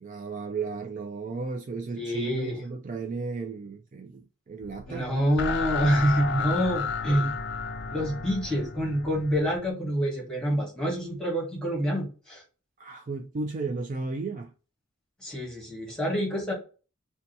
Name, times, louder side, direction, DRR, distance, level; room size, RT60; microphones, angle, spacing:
voice 1, 0.0-5.1 12.8-14.5, right 4 dB, 40° right, 0.3 m, -34 dB
voice 2, 2.0-2.6 4.9-7.3 7.9-12.4 15.2-16.5, equal, 5° left, 1.1 m, -27 dB
sound 1, 4.6-9.7, left 5 dB, 55° left, 0.4 m, -33 dB
2.8 x 2.2 x 3.9 m
head